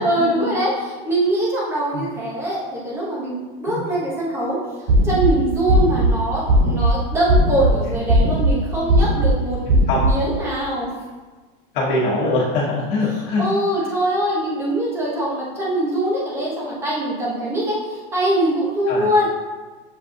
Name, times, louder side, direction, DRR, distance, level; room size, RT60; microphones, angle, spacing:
voice 1, 0.0-4.6 5.0-9.6 10.0-10.9 13.4-19.2, right 1 dB, 10° right, -6 dB, 0.7 m, -22 dB
sound 1, 4.9-5.3 5.7-6.1 6.5-6.9 7.3-7.7 8.1-8.5 8.9-9.3 9.7-10.1, right 1 dB, 85° right, 0.7 m, -16 dB
voice 2, 11.7-13.4 18.9-19.1, left 2 dB, 55° left, -6 dB, 1.2 m, -22 dB
7.3 x 2.5 x 2.6 m, 1.3 s
supercardioid pair, 175°, 29 cm